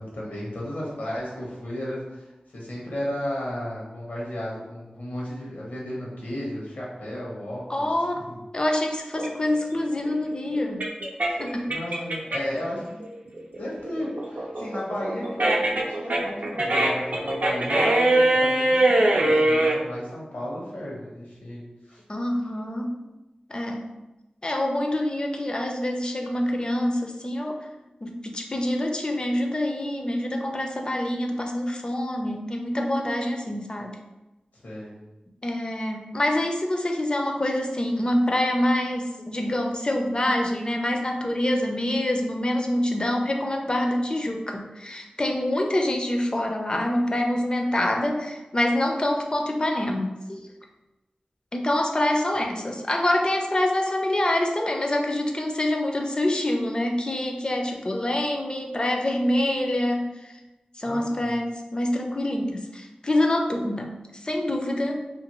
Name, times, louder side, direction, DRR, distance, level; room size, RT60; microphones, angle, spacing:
voice 1, 0.0-2.3 2.5-7.9 8.1-8.4 11.7-13.1 13.5-22.0 34.6-34.9 60.8-61.4, equal, 80° left, -5 dB, 1.0 m, -34 dB
voice 2, 7.7-8.3 8.5-10.8 11.3-11.7 22.1-23.0 23.5-23.9 24.4-27.6 28.0-33.9 35.4-50.4 51.5-60.4 60.8-65.1, left 1 dB, 35° left, 2 dB, 0.4 m, -26 dB
sound 1, 9.2-12.6 13.0-19.8, right 1 dB, 70° right, 0.5 m, -22 dB
2.5 x 2.5 x 2.9 m, 1.0 s
wide cardioid pair, 60°, 3 cm